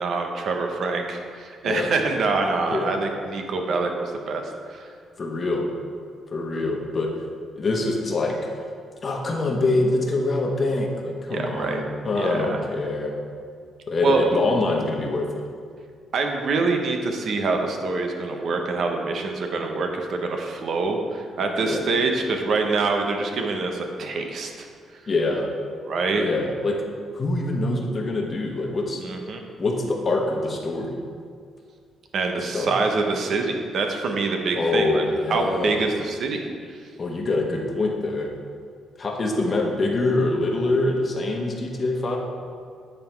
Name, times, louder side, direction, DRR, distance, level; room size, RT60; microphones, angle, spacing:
voice 1, 0.0-4.4 4.7-4.9 11.3-11.8 12.1-12.6 14.0-14.2 16.1-24.7 25.8-26.2 29.0-29.4 32.1-35.0 35.3-36.5, right 3 dB, 60° right, 3 dB, 0.8 m, -25 dB
voice 2, 5.2-5.6 6.3-7.1 7.6-8.4 9.0-13.1 13.9-15.4 21.6-21.8 25.1-25.5 26.2-26.9 27.1-29.0 29.6-30.9 32.5-32.7 34.6-35.8 37.0-38.3 39.0-42.2, left 2 dB, 40° left, 1 dB, 1.1 m, -24 dB
9.2 x 3.7 x 4.5 m, 2.1 s
cardioid pair, 90°, 0 cm